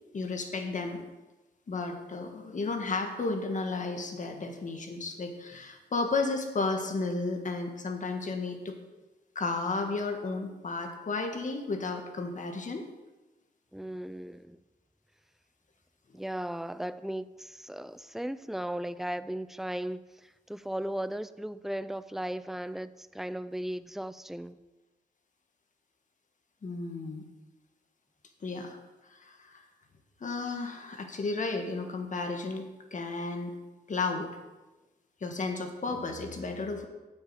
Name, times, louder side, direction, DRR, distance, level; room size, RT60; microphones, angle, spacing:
voice 1, 0.1-1.0 1.7-8.8 9.4-12.9 26.6-27.2 28.4-28.8 29.1-29.6 30.2-33.5 33.9-34.3 35.2-36.9, left 3 dB, 45° left, 5 dB, 1.6 m, -33 dB
voice 2, 13.7-14.6 16.1-24.6, right 1 dB, ahead, 15 dB, 0.4 m, -36 dB
8.9 x 6.4 x 7.8 m, 1.2 s
cardioid pair, 95°, 18 cm